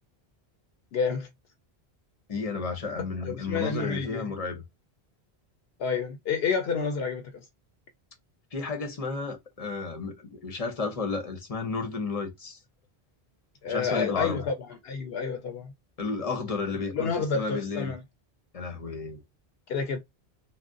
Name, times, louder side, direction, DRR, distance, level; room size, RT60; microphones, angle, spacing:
voice 1, 0.9-1.3 3.0-4.2 5.8-7.5 13.6-15.7 16.7-18.0 19.7-20.0, left 5 dB, 70° left, 0.8 m, -30 dB
voice 2, 2.3-4.6 8.5-12.6 13.7-14.5 16.0-17.9 18.5-19.2, left 4 dB, 40° left, 0.7 m, -32 dB
2.4 x 2.1 x 3.6 m
omnidirectional pair, 1.1 m